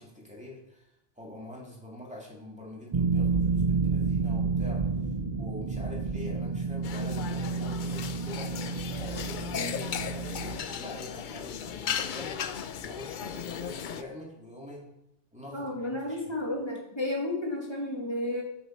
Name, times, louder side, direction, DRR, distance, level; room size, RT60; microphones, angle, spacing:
voice 1, 0.0-4.8 5.4-8.5 8.9-12.5 12.8-14.8 15.3-16.3, left 1 dB, 5° right, -4 dB, 2.3 m, -45 dB
sound 1, 2.9-10.6, right 4 dB, 40° right, 0.6 m, -30 dB
sound 2, 6.8-14.0, left 8 dB, 55° left, 0.6 m, -36 dB
voice 2, 15.5-18.4, left 1 dB, 25° left, -1 dB, 2.0 m, -32 dB
8.2 x 7.8 x 4.5 m, 0.83 s
omnidirectional pair, 1.2 m